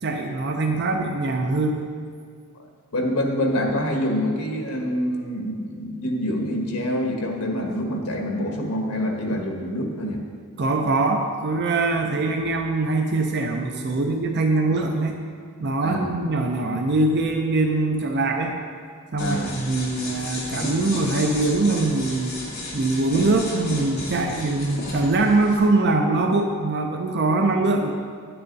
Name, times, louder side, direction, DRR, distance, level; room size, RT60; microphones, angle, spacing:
voice 1, 0.0-1.9 9.3-9.4 10.6-15.2 15.6-18.5 19.1-22.4 22.7-27.9, right 2 dB, 50° right, 3 dB, 0.5 m, -23 dB
voice 2, 2.9-10.2 15.8-16.1 19.2-19.5, equal, 85° left, 2 dB, 1.4 m, -26 dB
sound 1, 19.2-25.6, left 1 dB, 45° left, 2.0 m, -33 dB
10.5 x 7.8 x 4.0 m, 2.1 s
head